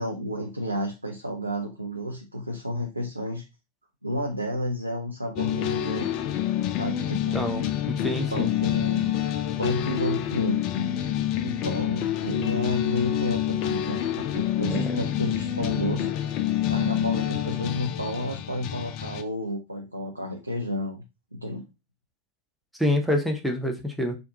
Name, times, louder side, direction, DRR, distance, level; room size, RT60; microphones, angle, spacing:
voice 1, 0.0-3.4 4.0-6.2 6.7-7.4 8.3-9.2 9.6-10.6 11.4-16.1 16.7-21.0 21.3-21.7, equal, 85° right, 0 dB, 0.6 m, -31 dB
sound 1, 5.4-19.2, left 11 dB, 40° left, 0.4 m, -27 dB
voice 2, 7.3-8.5 14.6-15.0 22.8-24.2, left 1 dB, ahead, 3 dB, 0.8 m, -27 dB
4.5 x 2.5 x 2.7 m, 0.26 s
figure-of-eight pair, 90°, 0 cm